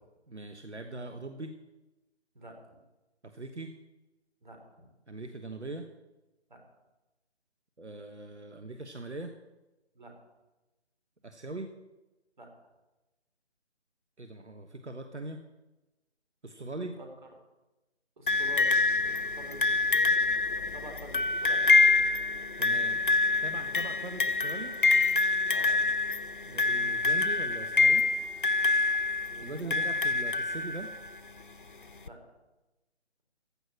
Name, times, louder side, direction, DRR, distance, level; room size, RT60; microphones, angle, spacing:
voice 1, 0.3-1.6 3.2-3.7 5.1-5.9 7.8-9.3 11.2-11.7 14.2-15.4 16.4-17.0 22.6-23.0 23.4-24.8 26.4-28.0 29.4-30.9, right 2 dB, 75° right, 7 dB, 1.3 m, -41 dB
voice 2, 18.2-21.9 25.5-25.8 29.3-29.8 32.0-32.2, right 1 dB, 45° right, 3 dB, 3.6 m, -47 dB
sound 1, 18.3-31.1 32.1-32.2, left 3 dB, 50° left, 0.6 m, -26 dB
15.5 x 6.2 x 9.7 m, 1.1 s
figure-of-eight pair, 155°, 34 cm